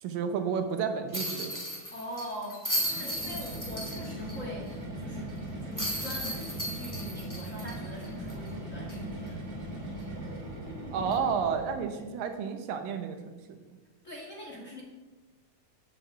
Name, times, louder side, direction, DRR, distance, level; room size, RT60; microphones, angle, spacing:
voice 1, 0.0-1.6 10.9-13.2, right 6 dB, 75° right, 6 dB, 2.6 m, -31 dB
sound 1, 1.1-4.3 4.7-4.8 5.8-8.5 8.9-9.0 11.1-11.3, equal, 15° left, 0.6 m, -35 dB
voice 2, 1.9-5.3 5.6-9.4 11.9-12.0 14.0-14.8, equal, 50° left, -2 dB, 0.9 m, -43 dB
sound 2, 2.8-11.9, right 1 dB, 30° right, 2.7 m, -39 dB
8.1 x 6.9 x 7.7 m, 1.2 s
omnidirectional pair, 4.2 m